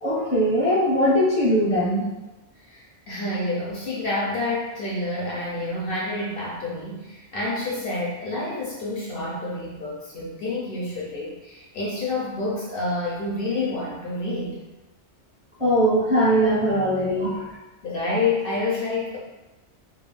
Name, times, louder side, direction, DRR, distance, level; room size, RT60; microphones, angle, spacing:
voice 1, 0.0-2.2 15.6-17.6, equal, 5° right, -9 dB, 0.7 m, -21 dB
voice 2, 2.6-14.6 17.8-19.2, left 2 dB, 60° left, -4 dB, 0.7 m, -28 dB
2.3 x 2.3 x 3.1 m, 1.1 s
omnidirectional pair, 1.2 m